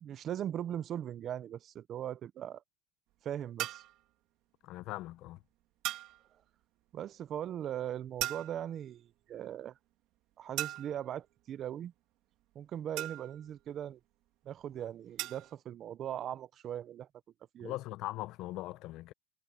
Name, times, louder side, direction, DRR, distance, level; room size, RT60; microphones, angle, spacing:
voice 1, 0.0-2.6 3.2-3.8 6.9-9.8 10.4-11.9 12.5-14.0 14.4-17.1 17.5-17.8, right 10 dB, 30° right, 0.5 m, -39 dB
sound 1, 3.6-4.0 5.8-6.2 8.2-8.8 10.6-11.1 13.0-13.5 15.2-15.5, right 16 dB, 45° right, 2.1 m, -38 dB
voice 2, 4.6-5.4 17.6-19.1, left 17 dB, 40° left, 0.7 m, -40 dB
supercardioid pair, 160°, 0 cm